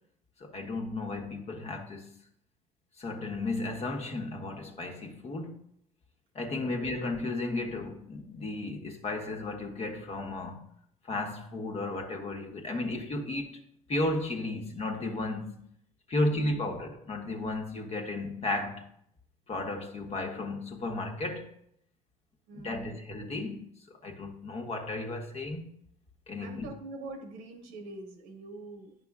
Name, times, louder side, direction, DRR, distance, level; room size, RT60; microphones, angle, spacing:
voice 1, 0.4-2.1 3.0-5.6 6.3-10.7 11.1-13.6 13.9-15.5 16.1-18.9 19.5-21.5 22.5-25.7 26.3-26.7, left 2 dB, 40° left, 1.3 m, -34 dB
voice 2, 6.6-7.0 16.1-16.8 22.5-23.0 26.4-29.0, right 2 dB, 80° right, 1.4 m, -44 dB
9.6 x 5.8 x 2.4 m
hypercardioid pair, 70°, 16 cm